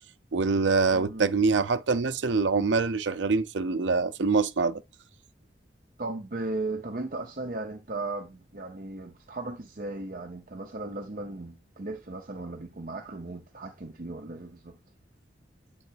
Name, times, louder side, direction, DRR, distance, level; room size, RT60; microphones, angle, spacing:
voice 1, 0.3-4.8, right 4 dB, 90° right, 0.6 m, -25 dB
voice 2, 0.9-1.3 6.0-14.8, right 2 dB, 50° right, 0.7 m, -36 dB
7.9 x 3.7 x 4.6 m
head